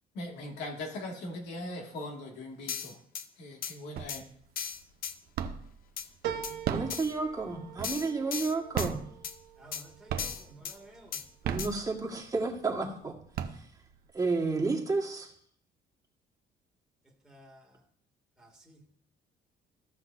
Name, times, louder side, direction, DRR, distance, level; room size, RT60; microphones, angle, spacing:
voice 1, 0.2-3.0 3.4-4.2, left 1 dB, 90° left, 2.1 m, -40 dB
sound 1, 2.7-3.3 3.6-3.7 4.1-4.2 4.6-5.1 6.0-6.1 6.4-6.5 6.9-7.1 7.8-8.9 9.2-9.4 9.7-9.8 10.2-10.8 11.1-11.2 11.6-11.7, left 8 dB, 60° left, 0.7 m, -37 dB
sound 2, 4.0-4.5 4.8-5.8 6.5-8.2 8.6-9.8 10.1-10.6 11.2-12.3 12.8-12.9 13.2-14.1, right 8 dB, 65° right, 0.7 m, -35 dB
sound 3, 6.2-11.0 11.5-12.2 12.5-12.6, right 9 dB, 85° right, 1.1 m, -43 dB
voice 2, 6.7-9.0 11.4-13.1 13.5-13.6 14.1-15.3, right 3 dB, 20° right, 1.6 m, -31 dB
voice 3, 9.6-11.2 17.3-17.6 18.4-18.8, right 1 dB, ahead, 1.8 m, -53 dB
15.0 x 5.8 x 2.6 m
cardioid pair, 110°, 17 cm